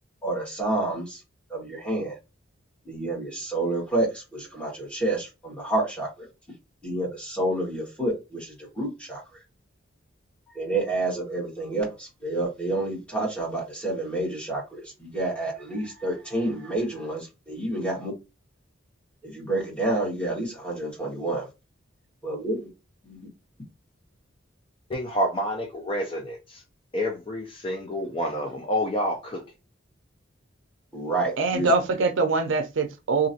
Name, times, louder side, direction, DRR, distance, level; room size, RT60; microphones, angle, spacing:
voice 1, 0.2-1.2 1.5-2.2 2.8-6.3 6.8-9.2 10.5-18.1 19.2-21.4 22.2-22.7 23.0-23.3 30.9-31.7, right 2 dB, 5° left, 1.4 m, -29 dB
voice 2, 24.9-26.6 26.9-29.4, equal, 25° left, 0.4 m, -28 dB
voice 3, 31.4-33.3, right 3 dB, 70° right, 0.5 m, -23 dB
3.0 x 2.6 x 2.7 m
head